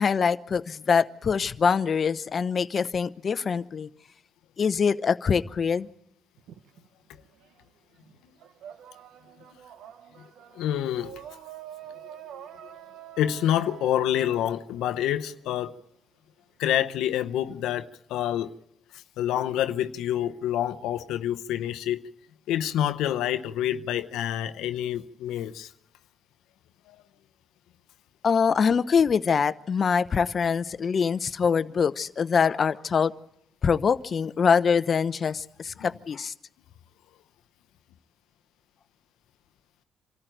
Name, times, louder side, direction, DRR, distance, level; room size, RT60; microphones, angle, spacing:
voice 1, 0.0-3.9 4.6-5.9 28.2-33.1 33.6-36.3, left 6 dB, 45° left, 0.8 m, -24 dB
sound 1, 6.4-7.6 7.9-15.7, right 11 dB, 80° right, 1.0 m, -46 dB
voice 2, 10.5-11.2 13.2-15.7 16.6-18.5 19.2-22.0 22.5-25.7 26.9-27.0, left 11 dB, 90° left, 0.7 m, -27 dB
26.0 x 13.5 x 9.1 m
cardioid pair, 90°, 0 cm